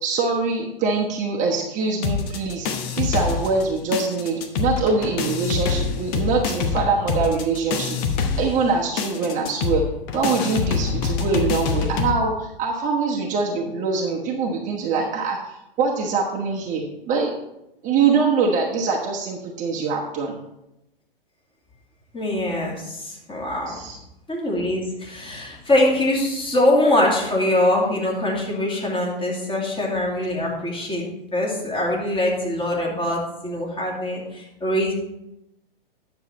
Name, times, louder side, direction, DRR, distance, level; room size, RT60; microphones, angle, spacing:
voice 1, 0.0-9.8 10.1-17.4 17.8-20.4 23.7-24.0, right 4 dB, 25° right, -2 dB, 1.2 m, -24 dB
sound 1, 2.0-3.7 3.9-12.1, left 5 dB, 35° left, 1.0 m, -25 dB
voice 2, 22.1-23.8 24.3-34.9, left 1 dB, 15° left, -3 dB, 2.6 m, -23 dB
9.7 x 6.7 x 4.2 m, 0.88 s
hypercardioid pair, 115°, 30 cm